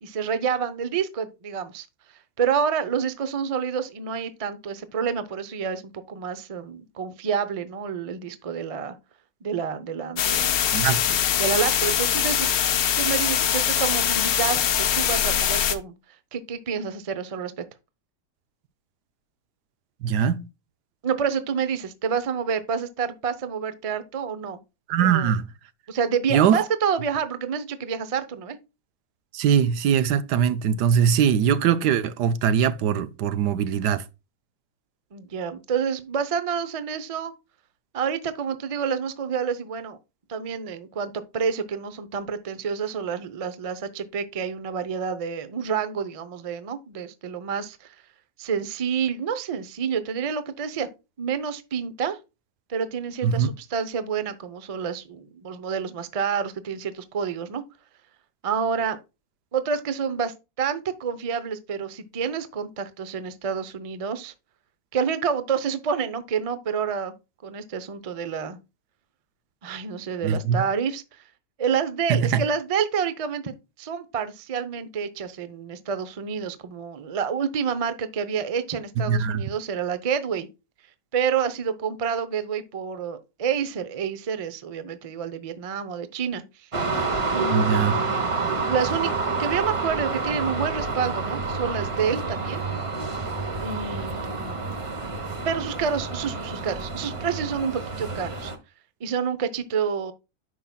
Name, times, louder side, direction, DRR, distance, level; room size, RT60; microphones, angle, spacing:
voice 1, 0.0-1.9 2.4-8.9 9.4-10.7 11.4-12.5 13.0-14.6 14.9-15.9 16.3-17.5 21.0-24.6 25.0-25.3 25.9-28.6 35.1-37.3 37.9-40.0 40.3-47.9 48.4-50.9 51.2-52.2 52.7-57.6 58.4-59.0 59.5-64.3 64.9-67.1 67.4-68.6 69.6-71.2 71.6-73.5 73.8-80.5 81.1-86.4 87.3-88.3 88.7-89.1 89.4-92.6 93.6-94.6 95.4-98.5 99.0-100.1, right 6 dB, 65° right, 0.3 m, -28 dB
sound 1, 10.2-15.8, left 9 dB, 70° left, 1.1 m, -23 dB
voice 2, 10.7-11.2 20.0-20.4 24.9-25.5 26.3-26.6 29.3-34.0 53.2-53.5 70.2-70.6 72.1-72.4 79.1-79.5 87.5-88.0, right 8 dB, 85° right, 1.2 m, -21 dB
sound 2, 86.7-98.5, right 3 dB, 30° right, 0.7 m, -28 dB
9.4 x 5.7 x 2.2 m
omnidirectional pair, 1.7 m